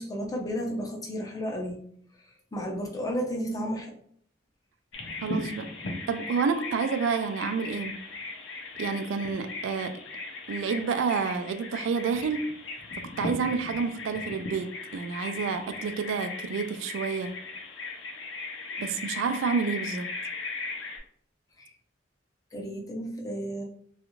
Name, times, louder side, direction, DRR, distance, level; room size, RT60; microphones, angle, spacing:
voice 1, 0.0-1.8 2.5-4.0 21.6-21.7 22.5-23.6, equal, 20° left, 0.5 m, -32 dB
Bird vocalization bird call bird song, 4.9-21.0, left 3 dB, 75° left, 0.6 m, -38 dB
voice 2, 5.2-5.7 6.1-8.0 8.8-10.0 10.5-12.6 13.0-17.4 18.8-20.1, right 5 dB, 85° right, 0.3 m, -29 dB
2.4 x 2.3 x 3.0 m
head